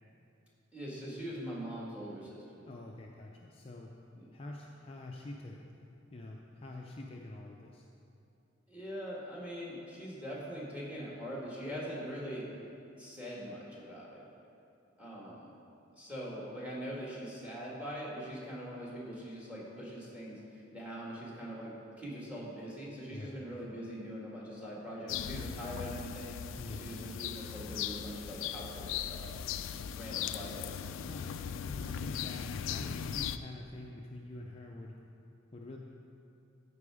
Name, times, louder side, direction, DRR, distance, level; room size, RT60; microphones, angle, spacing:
voice 1, 0.7-2.4 4.1-4.3 8.7-12.5 13.0-14.2 15.0-15.5 16.0-20.4 20.7-26.3 26.7-29.5 29.9-30.7, equal, 5° right, -5 dB, 2.0 m, -42 dB
voice 2, 2.7-3.9 4.3-5.7 6.1-7.9 23.1-23.4 26.6-26.9 31.1-35.0 35.5-35.8, left 2 dB, 30° left, -1 dB, 0.5 m, -46 dB
sound 1, 25.1-33.4, left 8 dB, 90° left, 0.3 m, -38 dB
13.5 x 4.8 x 4.9 m, 2.7 s
head